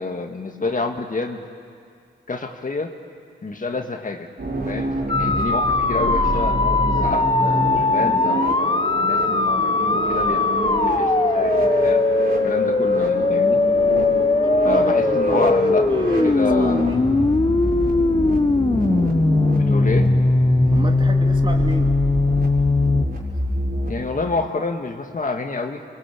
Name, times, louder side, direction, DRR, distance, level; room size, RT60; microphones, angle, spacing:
voice 1, 0.0-1.4 2.3-2.9 3.4-4.3 4.7-12.0 12.4-13.6 14.6-16.9 19.5-20.2 23.9-25.8, left 3 dB, 40° left, 4 dB, 1.9 m, -28 dB
sound 1, 4.4-23.9, right 2 dB, 50° right, 5.5 m, -27 dB
sound 2, 5.1-23.1, left 3 dB, 25° left, 1.0 m, -19 dB
voice 2, 14.4-17.0 20.7-21.9, right 2 dB, 25° right, 2 dB, 3.0 m, -31 dB
24.0 x 21.0 x 8.6 m, 2.2 s
cardioid pair, 55°, 20 cm